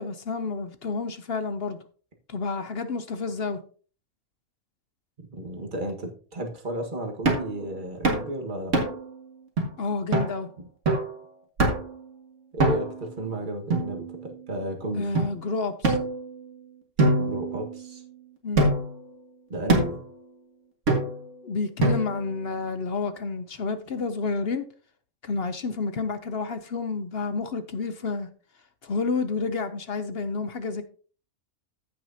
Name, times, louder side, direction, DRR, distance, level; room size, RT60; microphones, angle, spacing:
voice 1, 0.0-1.8 2.3-3.6 9.8-10.5 14.9-16.0 18.4-18.7 21.4-24.6 25.2-28.3 28.8-30.8, left 4 dB, 55° left, 0.8 m, -30 dB
voice 2, 5.2-8.7 10.6-10.7 12.5-15.0 17.2-18.0 19.5-20.0, right 1 dB, 35° right, 1.7 m, -33 dB
sound 1, 7.3-7.5 8.0-8.3 8.7-9.1 9.6-9.7 10.1-10.3 10.9-11.1 11.6-12.0 12.6-13.0 13.7-14.4 15.2-15.3 15.8-16.5 17.0-18.0 18.6-19.0 19.7-20.1 20.9-21.3 21.8-22.3, right 2 dB, 55° right, 2.2 m, -24 dB
15.0 x 6.1 x 2.8 m
omnidirectional pair, 1.5 m